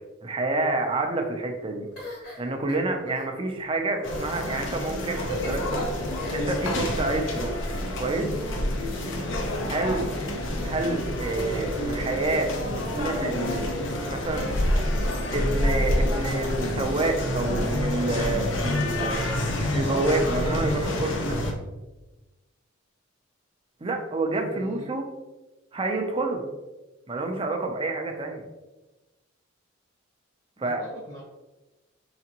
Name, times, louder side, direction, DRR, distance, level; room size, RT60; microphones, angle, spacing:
voice 1, 0.0-1.9 2.4-5.9 6.3-7.5 8.0-8.3 9.7-10.1 10.6-13.8 14.0-14.5 15.3-19.3 19.7-21.4 23.8-25.0 25.7-26.4 27.1-28.4 30.6-30.8, right 2 dB, 30° right, 3 dB, 0.6 m, -28 dB
sound 1, 2.0-3.3 3.9-4.3 5.2-5.7 6.2-6.6 7.3-7.8, left 2 dB, 55° left, 1.4 m, -40 dB
sound 2, 4.0-21.5, left 1 dB, 75° left, 0.7 m, -28 dB
voice 2, 24.4-24.9 30.6-31.2, right 1 dB, 30° left, -3 dB, 1.0 m, -43 dB
4.9 x 3.4 x 2.9 m, 1.1 s
head